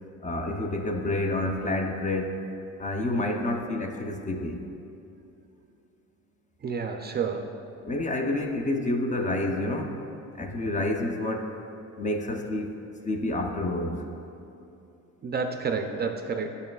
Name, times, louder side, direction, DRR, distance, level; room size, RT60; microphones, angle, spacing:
voice 1, 0.2-2.4 2.8-4.6 7.8-10.0 10.4-11.5 12.0-12.8 13.0-14.0, left 1 dB, 25° left, 3 dB, 0.5 m, -28 dB
voice 2, 6.6-7.5 15.2-16.5, right 5 dB, 35° right, 5 dB, 0.4 m, -29 dB
9.2 x 5.3 x 2.3 m, 2.7 s
cardioid pair, 85°, 31 cm